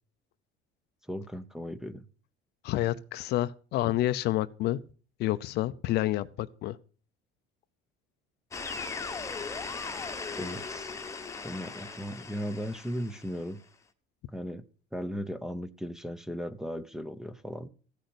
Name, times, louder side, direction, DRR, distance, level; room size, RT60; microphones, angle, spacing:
voice 1, 1.1-2.1 10.4-10.9 11.4-13.6 14.3-14.6 14.9-17.7, equal, ahead, 0.7 m, -37 dB
voice 2, 2.6-4.8 5.2-6.8, left 15 dB, 55° left, 0.6 m, -29 dB
sound 1, 8.5-13.5, left 4 dB, 15° left, 1.1 m, -38 dB
15.0 x 6.6 x 7.9 m
cardioid pair, 155°, 21 cm